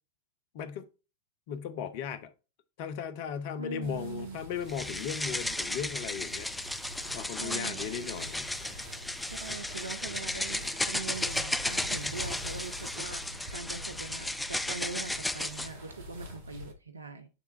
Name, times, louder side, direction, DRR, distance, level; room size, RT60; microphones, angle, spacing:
voice 1, 0.5-0.9 1.5-2.3 2.8-6.5 7.1-8.5, left 8 dB, 50° left, 0.7 m, -37 dB
voice 2, 3.6-4.4 7.4-8.2 9.2-17.3, right 4 dB, 80° right, 0.5 m, -42 dB
sound 1, 3.8-16.7, equal, 60° right, 2.2 m, -46 dB
sound 2, 4.7-15.7, left 1 dB, 5° left, 0.4 m, -34 dB
8.7 x 3.5 x 4.2 m
figure-of-eight pair, 90°, 0 cm